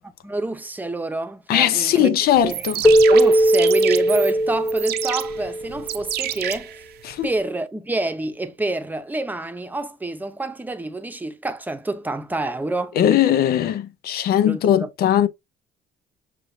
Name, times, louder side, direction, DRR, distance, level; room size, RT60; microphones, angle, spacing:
voice 1, 0.2-2.1 2.4-6.8 7.2-13.0 14.4-14.9, right 2 dB, 10° right, 0.8 m, -27 dB
voice 2, 1.5-2.8 7.0-7.3 13.0-15.3, left 10 dB, 65° left, 0.7 m, -19 dB
sound 1, 2.4-7.4, right 13 dB, 70° right, 0.7 m, -30 dB
Keyboard (musical), 2.8-6.0, right 1 dB, 10° left, 0.3 m, -18 dB
6.7 x 2.5 x 2.8 m
cardioid pair, 110°, 17 cm